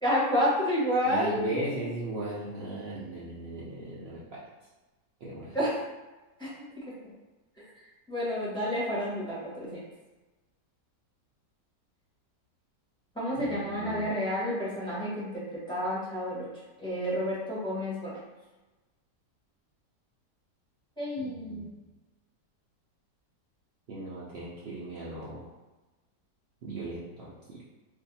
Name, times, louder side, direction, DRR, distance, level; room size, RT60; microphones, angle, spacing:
voice 1, 0.0-1.4 5.5-5.8 6.4-6.5 7.6-7.7 8.1-9.8 13.1-16.5 16.8-18.2 21.0-21.7, equal, 5° left, -8 dB, 0.8 m, -30 dB
voice 2, 1.1-4.4 5.2-5.6 13.4-14.1 21.2-21.6 23.9-25.5 26.6-27.7, right 2 dB, 85° right, -7 dB, 0.5 m, -37 dB
2.6 x 2.5 x 3.9 m, 1.1 s
omnidirectional pair, 1.8 m